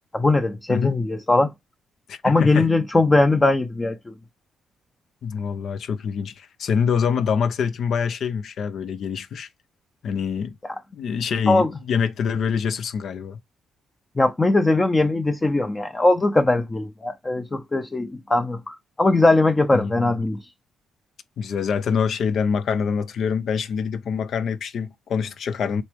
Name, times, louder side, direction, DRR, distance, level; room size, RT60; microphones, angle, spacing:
voice 1, 0.1-1.5 2.2-4.1 11.5-11.7 14.2-20.4, left 2 dB, 20° left, 0.7 m, -20 dB
voice 2, 2.1-2.7 5.2-9.5 10.0-10.5 10.9-13.4 19.7-20.2 21.4-25.8, left 6 dB, 65° left, 1.0 m, -25 dB
8.1 x 3.5 x 3.6 m
cardioid pair, 90°, 0 cm